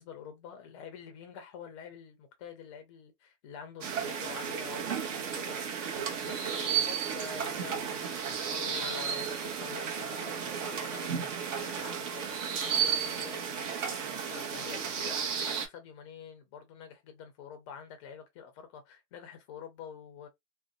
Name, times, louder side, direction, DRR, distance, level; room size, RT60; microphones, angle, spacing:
voice 1, 0.0-20.3, left 7 dB, 20° left, 0.4 m, -47 dB
sound 1, 3.8-15.7, right 7 dB, 50° right, 0.8 m, -33 dB
2.6 x 2.0 x 2.4 m
hypercardioid pair, 125°, 47 cm